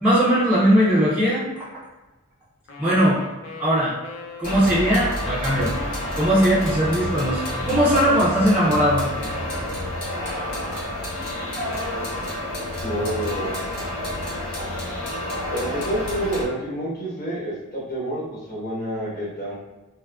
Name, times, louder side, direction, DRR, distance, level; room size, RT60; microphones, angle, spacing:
voice 1, 0.0-1.5 2.8-3.2 3.6-4.0 4.4-5.7 6.1-9.1, equal, 5° right, -10 dB, 0.4 m, -19 dB
sound 1, 2.7-9.9, left 2 dB, 60° left, 0.3 m, -39 dB
sound 2, 4.4-16.5, left 1 dB, 80° left, 1.0 m, -29 dB
voice 2, 12.8-13.6 15.5-19.5, equal, 45° left, -8 dB, 0.9 m, -28 dB
2.5 x 2.3 x 2.2 m, 1.1 s
head